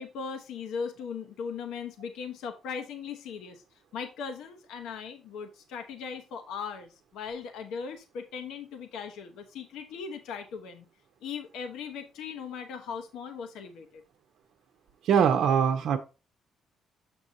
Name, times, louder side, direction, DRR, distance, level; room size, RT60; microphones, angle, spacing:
voice 1, 0.0-3.6 3.9-10.8 11.2-14.0, left 6 dB, 85° left, 5 dB, 0.9 m, -38 dB
voice 2, 15.0-16.0, right 7 dB, 80° right, 5 dB, 0.7 m, -22 dB
7.2 x 6.2 x 2.7 m, 0.30 s
cardioid pair, 90°, 0 cm